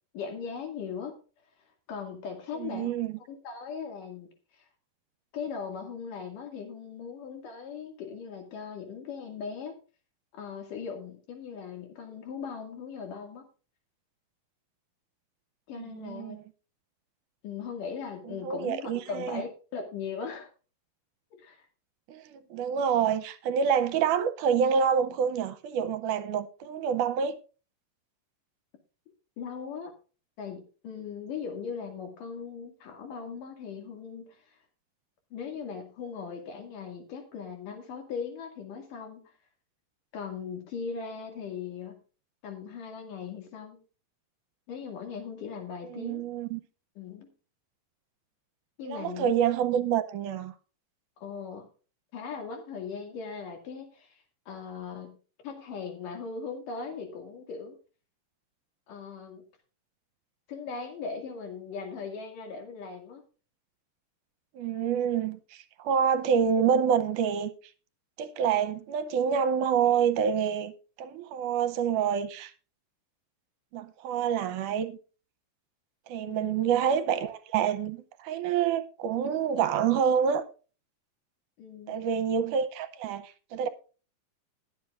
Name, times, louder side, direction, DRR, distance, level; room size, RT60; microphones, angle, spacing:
voice 1, 0.1-1.2 1.9-2.9 3.3-4.7 5.3-9.8 10.3-13.5 15.7-16.4 17.4-20.5 21.3-21.7 29.4-29.9 30.4-34.6 35.3-39.3 40.1-42.0 42.4-43.8 44.7-46.3 47.0-47.3 48.8-49.4 51.2-51.7 52.1-55.2 55.4-57.8 58.9-59.4 60.5-63.2 76.3-76.7 81.6-82.1, left 6 dB, 75° left, 3.8 m, -39 dB
voice 2, 2.6-3.1 15.8-16.4 18.3-19.4 22.1-27.4 45.9-46.6 48.9-50.5 64.5-67.5 68.2-70.7 71.0-72.5 73.7-75.0 76.1-80.4 81.9-83.7, right 7 dB, 80° right, 2.2 m, -27 dB
21.0 x 7.6 x 2.5 m
omnidirectional pair, 3.8 m